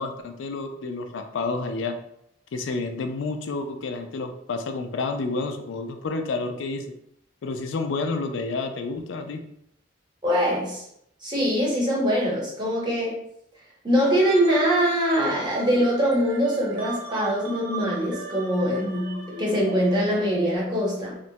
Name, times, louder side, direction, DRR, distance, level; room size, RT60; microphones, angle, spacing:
voice 1, 0.0-2.0 2.5-6.8 7.4-9.4, left 3 dB, 75° left, 6 dB, 0.4 m, -29 dB
voice 2, 10.2-10.8 11.2-13.2 13.8-21.2, equal, 25° right, -5 dB, 0.9 m, -23 dB
sound 1, 14.0-20.6, right 3 dB, 65° right, 0.8 m, -37 dB
3.0 x 2.1 x 2.7 m, 0.75 s
head